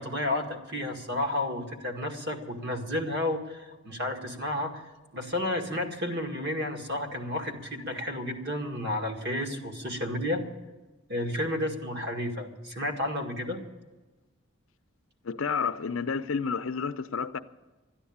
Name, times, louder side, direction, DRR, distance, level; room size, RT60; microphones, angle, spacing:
voice 1, 0.0-10.4 11.1-13.6, left 1 dB, 55° right, 1.9 m, -32 dB
voice 2, 15.2-17.4, left 5 dB, 75° left, 0.6 m, -30 dB
13.5 x 9.9 x 8.6 m
head